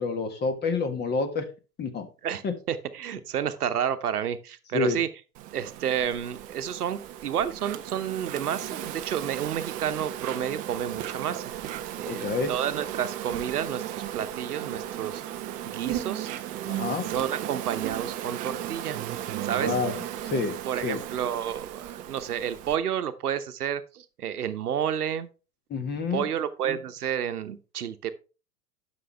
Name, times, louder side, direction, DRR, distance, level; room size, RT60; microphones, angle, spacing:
voice 1, 0.0-1.4 1.8-2.1 2.4-2.5 4.7-5.0 12.1-12.5 16.7-17.1 19.6-20.5 20.8-21.0 25.7-26.3, left 4 dB, 20° left, 7 dB, 1.4 m, -28 dB
voice 2, 2.2-5.1 5.5-11.5 11.9-15.2 15.7-16.3 17.1-19.0 19.4-19.7 20.6-25.3 26.1-28.1, right 9 dB, 75° right, 11 dB, 0.9 m, -30 dB
Insect, 5.3-22.8, right 12 dB, 20° right, 0.4 m, -35 dB
11.0 x 6.1 x 3.3 m, 0.33 s
figure-of-eight pair, 100°, 46 cm